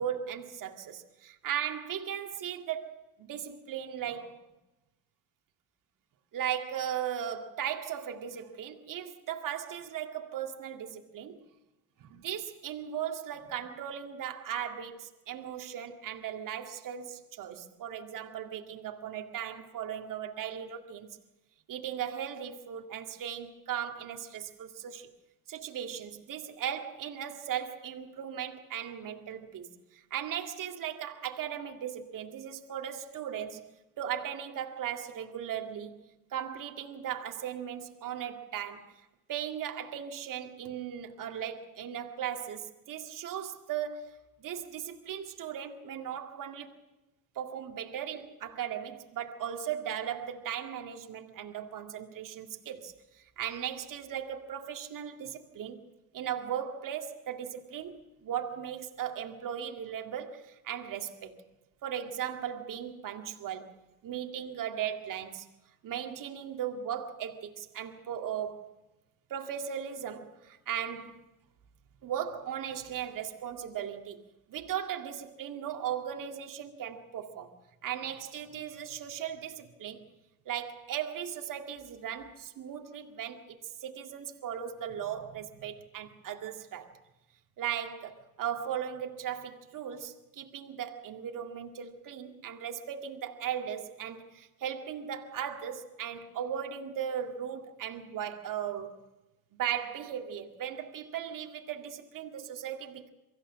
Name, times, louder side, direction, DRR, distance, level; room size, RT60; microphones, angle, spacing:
voice 1, 0.0-4.4 6.3-11.4 12.0-21.1 21.7-25.1 25.5-33.7 34.0-36.0 36.3-39.0 39.3-46.7 47.4-55.8 56.1-61.4 61.8-63.7 64.0-65.5 65.8-68.7 69.3-71.2 72.0-74.2 74.5-80.0 80.5-87.0 87.6-99.0 99.6-103.1, right 9 dB, 50° right, 2.2 m, -37 dB
23.5 x 15.0 x 7.4 m
hypercardioid pair, 65°, 41 cm